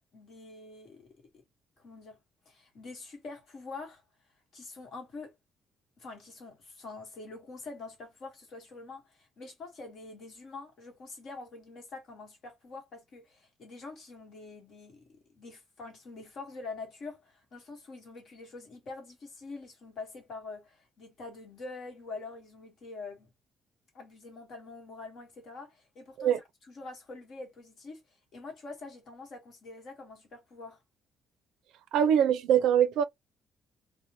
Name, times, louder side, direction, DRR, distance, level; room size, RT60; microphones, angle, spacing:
voice 1, 0.1-1.4 1.8-2.2 2.4-4.0 4.5-5.3 6.0-23.3 23.9-28.0 28.3-30.8, left 3 dB, 45° left, 1.2 m, -45 dB
voice 2, 31.9-33.0, right 9 dB, 80° right, 0.4 m, -23 dB
2.6 x 2.1 x 2.8 m
cardioid pair, 170°, 0 cm